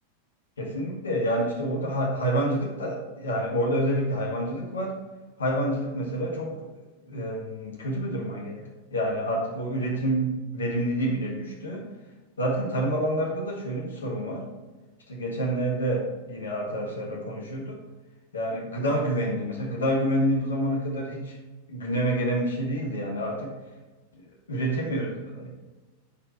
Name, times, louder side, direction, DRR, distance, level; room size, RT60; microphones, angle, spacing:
voice 1, 0.6-4.9 5.4-6.7 7.0-11.8 12.4-14.5 15.1-17.8 18.3-21.4 21.7-23.6 24.5-25.5, right 1 dB, 70° left, -1 dB, 1.6 m, -28 dB
7.3 x 4.6 x 4.5 m, 1.2 s
figure-of-eight pair, 90°, 0 cm